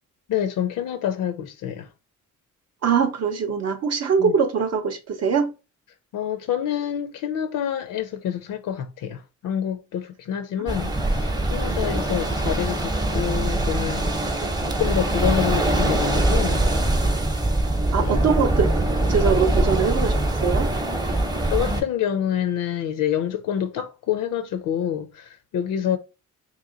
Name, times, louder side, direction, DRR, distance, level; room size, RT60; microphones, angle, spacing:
voice 1, 0.3-1.9 4.2-4.3 6.1-16.7 18.0-18.2 21.1-21.2 21.5-26.0, left 9 dB, 80° left, 0.5 m, -27 dB
voice 2, 2.8-5.5 10.6-10.7 11.8-11.9 14.4-14.5 17.9-18.8 19.1-20.2 20.4-20.7, right 6 dB, 55° right, 0.6 m, -22 dB
sound 1, 10.7-21.8, right 1 dB, 15° right, 0.6 m, -23 dB
2.9 x 2.8 x 3.7 m
cardioid pair, 125°, 31 cm